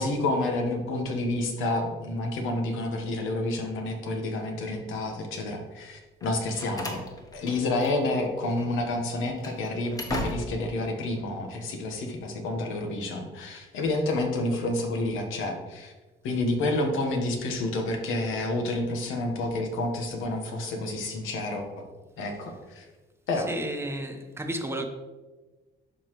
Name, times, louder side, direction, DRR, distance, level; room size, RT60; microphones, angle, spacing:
voice 1, 0.0-7.0 7.3-15.9 16.2-21.9 22.2-22.9 23.3-23.5, left 2 dB, 90° left, 1.2 m, -29 dB
Slam, 6.2-8.2 8.5-8.7 9.2-10.8, left 1 dB, 20° left, 1.2 m, -36 dB
voice 2, 23.5-24.9, right 1 dB, 10° right, 1.0 m, -32 dB
11.5 x 4.0 x 3.1 m
cardioid pair, 90°, 20 cm